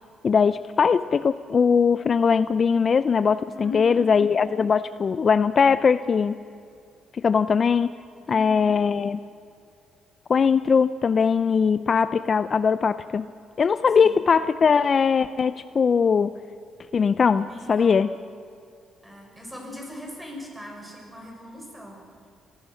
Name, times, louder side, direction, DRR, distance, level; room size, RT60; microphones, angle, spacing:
voice 1, 0.2-6.4 7.1-8.0 8.3-9.2 10.3-13.3 13.6-16.3 16.9-18.1, left 6 dB, 45° left, 14 dB, 0.5 m, -20 dB
voice 2, 3.5-4.0 8.3-8.7 14.0-14.1 17.4-18.0 19.0-22.0, left 1 dB, 5° right, 0 dB, 6.7 m, -39 dB
26.0 x 18.0 x 6.4 m, 2.4 s
cardioid pair, 90°, 0 cm